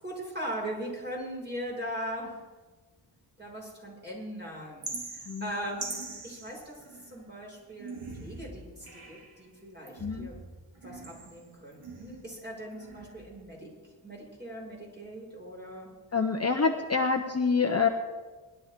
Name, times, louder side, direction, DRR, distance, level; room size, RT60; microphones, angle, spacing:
voice 1, 0.0-2.4 3.4-7.9 8.2-10.4 10.8-13.7 14.0-15.9, equal, 20° right, -3 dB, 5.7 m, -40 dB
sound 1, 4.8-7.3 7.8-9.4 9.8-12.4 12.7-13.4, right 3 dB, 90° right, 2.6 m, -43 dB
voice 2, 10.0-10.3 16.1-17.9, left 5 dB, 30° left, 4 dB, 0.9 m, -26 dB
20.5 x 11.5 x 3.7 m, 1.3 s
wide cardioid pair, 85°, 49 cm